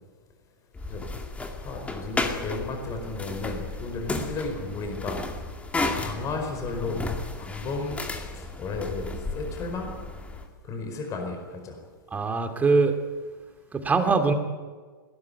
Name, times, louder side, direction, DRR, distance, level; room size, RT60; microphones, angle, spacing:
sound 1, 0.7-10.5, left 3 dB, 10° left, 2.4 m, -33 dB
voice 1, 1.6-5.2 5.9-7.0 7.4-8.0 8.3-9.1 9.3-9.9 10.6-11.8, left 3 dB, 30° left, 3 dB, 4.8 m, -33 dB
voice 2, 12.1-13.0 13.7-14.3, right 4 dB, 15° right, 7 dB, 2.4 m, -22 dB
21.5 x 18.0 x 9.5 m, 1.5 s
figure-of-eight pair, 100°, 11 cm